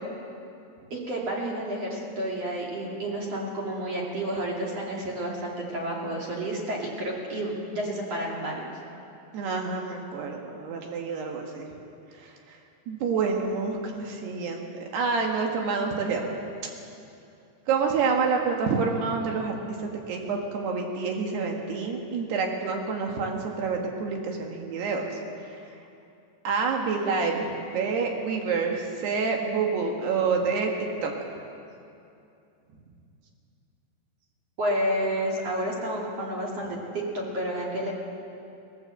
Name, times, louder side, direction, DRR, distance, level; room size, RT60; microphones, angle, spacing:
voice 1, 0.9-8.7 34.6-37.9, right 1 dB, 40° right, -3 dB, 3.2 m, -30 dB
voice 2, 9.3-11.7 12.1-12.6 12.9-16.2 16.6-16.7 17.7-25.1 25.4-25.6 26.5-30.7 31.0-31.1, right 5 dB, 70° right, 1 dB, 3.6 m, -28 dB
20.5 x 18.0 x 7.9 m, 2.6 s
omnidirectional pair, 4.9 m